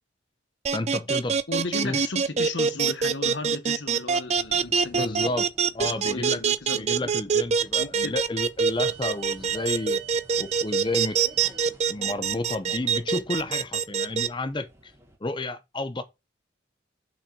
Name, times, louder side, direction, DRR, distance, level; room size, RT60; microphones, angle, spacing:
voice 1, 0.7-1.4 1.7-2.0 4.9-5.5 5.7-6.4 6.7-10.0 10.4-11.2 11.9-14.9 15.2-16.0, left 2 dB, 25° left, 0.7 m, -31 dB
sound 1, 0.7-14.3, right 6 dB, 35° right, 0.4 m, -24 dB
voice 2, 1.5-5.3 5.8-7.1 7.8-8.1, left 2 dB, 70° left, 1.0 m, -35 dB
sound 2, 4.3-15.2, right 4 dB, 15° right, 1.0 m, -49 dB
5.8 x 4.3 x 5.2 m
head